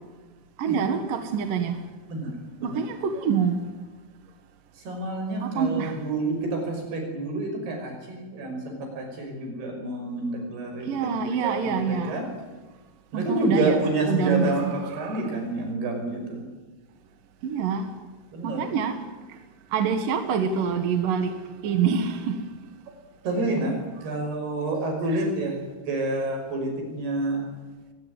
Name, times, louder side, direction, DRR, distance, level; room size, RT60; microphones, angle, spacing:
voice 1, 0.6-1.8 2.6-3.7 5.4-6.0 10.9-12.2 13.1-15.3 17.4-17.9 18.4-19.0 19.7-22.4 25.1-25.3, right 6 dB, 65° right, 3.1 m, -26 dB
voice 2, 4.9-12.3 13.1-14.7 15.0-16.5 18.3-18.6 23.2-27.4, right 2 dB, 85° right, 7.7 m, -28 dB
23.5 x 19.0 x 9.6 m
omnidirectional pair, 4.5 m